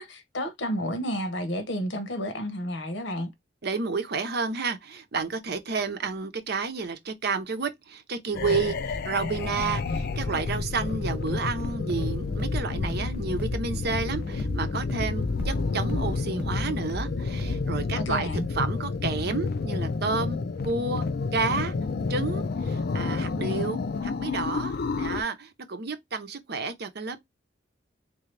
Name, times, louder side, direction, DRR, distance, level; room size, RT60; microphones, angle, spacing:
voice 1, 0.0-3.3 18.0-18.5, equal, 75° left, 1.0 m, -31 dB
voice 2, 3.6-20.4 20.6-21.1 21.3-21.7 22.1-27.2, right 4 dB, 60° right, 0.7 m, -31 dB
sound 1, 8.3-25.2, left 4 dB, 55° left, 0.4 m, -30 dB
sound 2, 11.5-17.6, left 1 dB, 10° right, 1.1 m, -36 dB
3.7 x 2.7 x 3.2 m
head